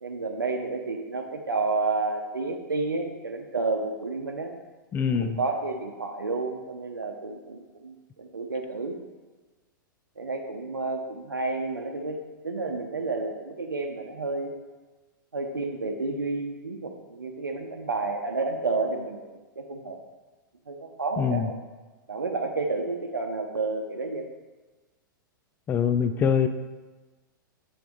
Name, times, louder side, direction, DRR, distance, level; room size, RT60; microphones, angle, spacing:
voice 1, 0.0-4.5 5.2-9.0 10.2-12.2 12.4-14.6 15.3-19.3 19.6-20.0 20.7-21.6 22.1-24.3, right 3 dB, 80° right, 3 dB, 0.7 m, -30 dB
voice 2, 4.9-5.4 21.2-21.5 25.7-26.5, left 7 dB, 15° left, 9 dB, 0.4 m, -24 dB
7.8 x 3.4 x 6.1 m, 1.2 s
figure-of-eight pair, 105°, 11 cm